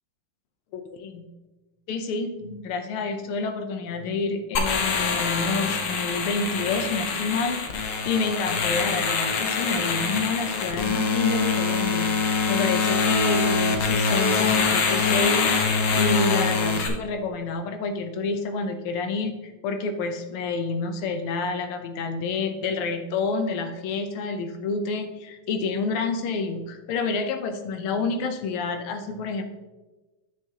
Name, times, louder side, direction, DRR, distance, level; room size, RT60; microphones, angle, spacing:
voice 1, 1.9-7.6 8.0-29.4, left 4 dB, 80° left, 7 dB, 1.7 m, -28 dB
sound 1, 4.6-16.9, left 4 dB, 65° left, 1.5 m, -24 dB
9.5 x 7.4 x 2.8 m, 1.2 s
omnidirectional pair, 2.4 m